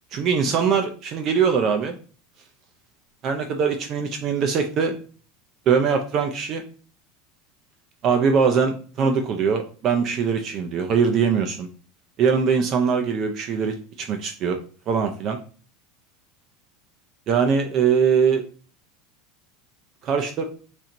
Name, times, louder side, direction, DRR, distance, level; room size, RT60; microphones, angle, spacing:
voice 1, 0.1-2.0 3.2-5.0 5.7-6.6 8.0-11.7 12.2-14.6 14.9-15.4 17.3-18.4 20.0-20.4, right 6 dB, 30° right, 4 dB, 0.5 m, -22 dB
4.1 x 2.5 x 4.3 m, 0.39 s
supercardioid pair, 165°, 0 cm